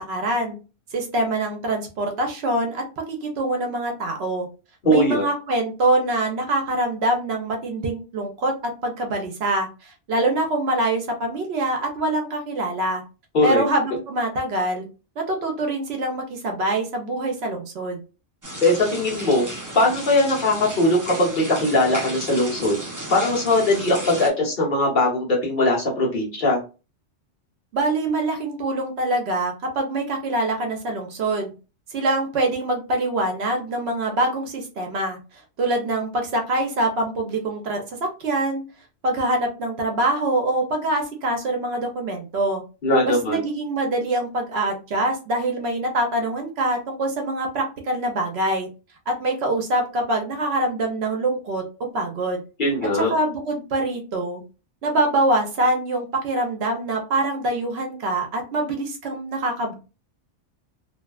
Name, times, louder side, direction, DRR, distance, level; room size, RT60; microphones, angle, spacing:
voice 1, 0.1-0.6 0.9-4.5 4.9-8.5 8.8-13.0 13.4-14.9 15.2-18.0 27.7-31.5 31.9-35.2 35.6-38.6 39.0-42.6 43.0-48.7 49.1-51.6 51.9-52.4 52.9-54.4 54.8-59.7, right 2 dB, 65° right, 3 dB, 0.9 m, -24 dB
voice 2, 4.8-5.2 13.3-13.7 18.6-19.4 19.7-22.8 23.1-26.6 42.8-43.4 52.6-53.1, left 1 dB, 50° left, -3 dB, 1.0 m, -20 dB
sound 1, 18.4-24.3, right 1 dB, 20° right, 0.5 m, -34 dB
2.6 x 2.3 x 2.2 m, 0.32 s
omnidirectional pair, 1.2 m